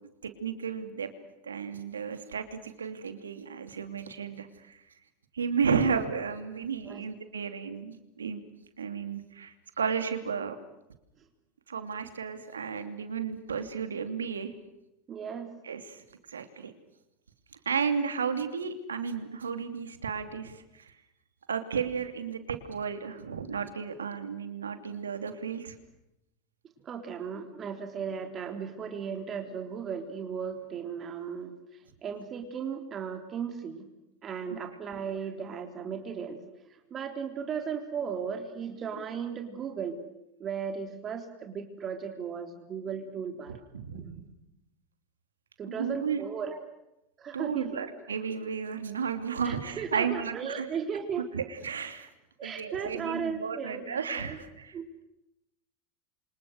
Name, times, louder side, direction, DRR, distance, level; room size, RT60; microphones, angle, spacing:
voice 1, 0.2-1.1 1.4-4.8 5.3-8.4 8.8-10.6 11.7-14.5 15.6-16.0 16.3-16.7 17.6-20.9 21.5-25.7 43.5-44.0 45.7-46.2 47.3-50.7 51.3-52.1 52.4-54.8, right 6 dB, 85° right, 8 dB, 2.8 m, -33 dB
voice 2, 15.1-15.5 26.8-33.9 34.2-40.0 40.4-43.5 43.9-44.2 45.6-46.6 47.2-47.8 49.4-51.3 52.4-54.4 54.7-54.8, right 6 dB, 35° right, 5 dB, 3.5 m, -36 dB
29.0 x 26.0 x 6.5 m, 0.88 s
hypercardioid pair, 85°, 0 cm